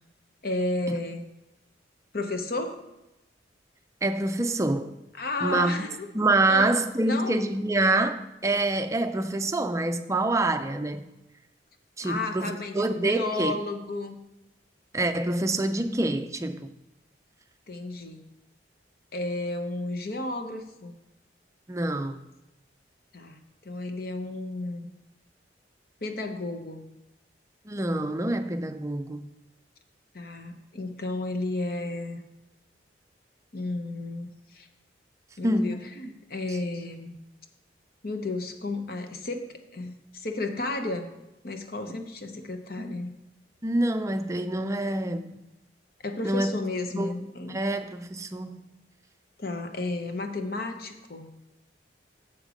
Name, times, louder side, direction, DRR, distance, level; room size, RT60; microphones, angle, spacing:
voice 1, 0.4-1.2 2.1-2.8 5.2-6.1 6.5-7.4 12.0-14.2 17.7-18.2 19.1-21.0 23.1-24.9 26.0-26.8 30.1-32.2 33.5-34.7 35.4-37.2 38.0-41.1 41.4-43.1 46.0-47.6 49.4-51.3, left 2 dB, 55° left, 0.9 m, -33 dB
voice 2, 4.0-5.0 5.4-5.7 6.1-11.1 12.0-13.6 14.9-16.7 21.7-22.2 27.7-29.3 35.4-35.9 36.5-36.6 42.8-42.9 43.6-45.3 46.2-46.6 46.9-47.1 47.5-48.6, right 2 dB, 15° right, 0.4 m, -26 dB
7.2 x 6.6 x 5.0 m
head